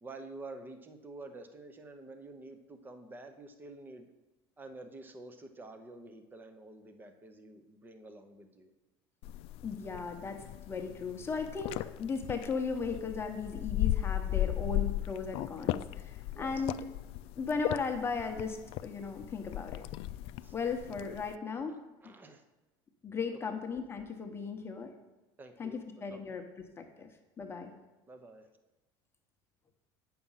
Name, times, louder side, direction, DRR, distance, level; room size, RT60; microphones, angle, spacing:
voice 1, 0.0-4.1 4.6-8.7 16.3-16.7 20.4-20.5 22.0-22.4 25.4-25.8 26.1-26.2 28.1-28.5, right 2 dB, 15° right, 8 dB, 0.8 m, -49 dB
sound 1, 9.2-21.4, left 14 dB, 60° left, 0.3 m, -36 dB
voice 2, 9.6-16.9 17.4-18.6 18.8-19.8 20.5-21.8 23.0-24.9 25.6-27.1 27.4-27.7, left 5 dB, 20° left, 4 dB, 0.9 m, -36 dB
8.7 x 5.9 x 5.6 m, 1.1 s
cardioid pair, 130°, 11 cm